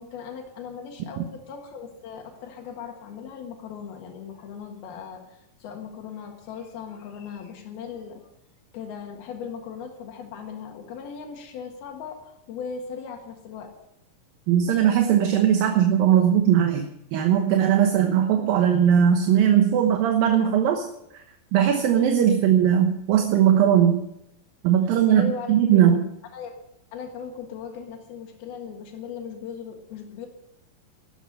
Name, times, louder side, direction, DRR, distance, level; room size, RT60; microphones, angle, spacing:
voice 1, 0.0-8.2 8.7-13.7 25.1-25.6 26.3-26.6 26.9-30.3, left 6 dB, 90° left, 2 dB, 3.6 m, -38 dB
voice 2, 14.5-20.8 21.5-24.0 24.6-26.1, right 9 dB, 75° right, 4 dB, 2.8 m, -19 dB
13.0 x 12.0 x 6.7 m, 0.81 s
omnidirectional pair, 4.3 m